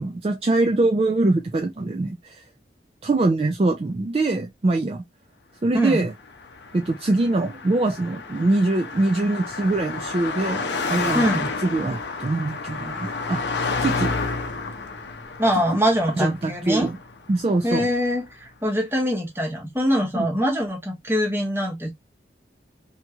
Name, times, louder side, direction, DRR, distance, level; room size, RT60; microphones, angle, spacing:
voice 1, 0.0-2.4 3.0-5.0 5.6-6.1 6.7-13.4 13.8-14.1 16.2-17.0 17.3-17.9 20.1-20.3, right 2 dB, 30° right, 0.3 m, -23 dB
voice 2, 5.7-6.1 11.1-11.5 15.4-16.9 17.6-21.9, equal, 15° right, 0.8 m, -23 dB
Car passing by, 6.2-17.7, left 4 dB, 75° left, 0.6 m, -30 dB
2.9 x 2.8 x 2.2 m
head